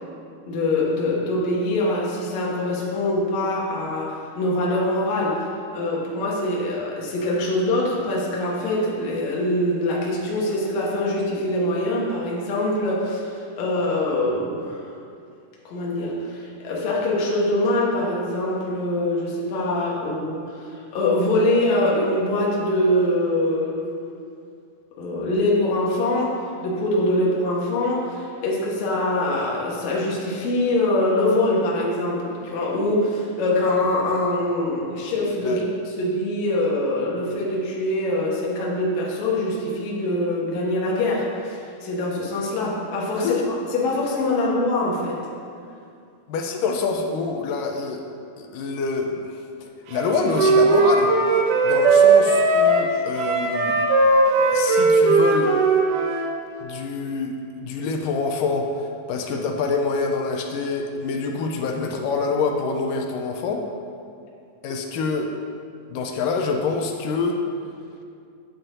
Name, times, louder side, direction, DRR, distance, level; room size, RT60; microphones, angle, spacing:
voice 1, 0.5-5.4 5.7-14.8 15.7-23.9 25.0-43.3 43.7-45.2, left 1 dB, 60° left, -4 dB, 2.4 m, -24 dB
voice 2, 43.1-43.5 46.3-48.0 48.4-53.8 54.5-55.5 56.6-63.7 64.6-65.3 65.9-67.4, left 4 dB, 80° left, 3 dB, 2.2 m, -26 dB
Wind instrument woodwind instrument, 49.9-56.3, right 3 dB, 75° right, 2.3 m, -18 dB
13.0 x 8.0 x 2.7 m, 2.4 s
omnidirectional pair, 3.9 m